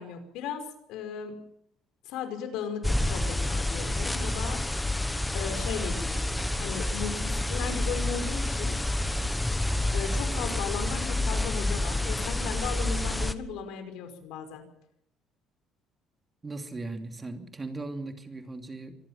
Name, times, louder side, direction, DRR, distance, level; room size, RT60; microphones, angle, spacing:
voice 1, 0.0-1.4 2.1-4.6 5.3-6.3 6.6-8.8 9.9-14.6, left 7 dB, 80° left, 7 dB, 5.3 m, -36 dB
sound 1, 2.8-13.3, left 1 dB, 5° left, 1.1 m, -29 dB
voice 2, 16.4-19.0, right 2 dB, 15° right, 5 dB, 2.8 m, -38 dB
25.5 x 19.0 x 5.9 m, 0.71 s
cardioid pair, 170°, 0 cm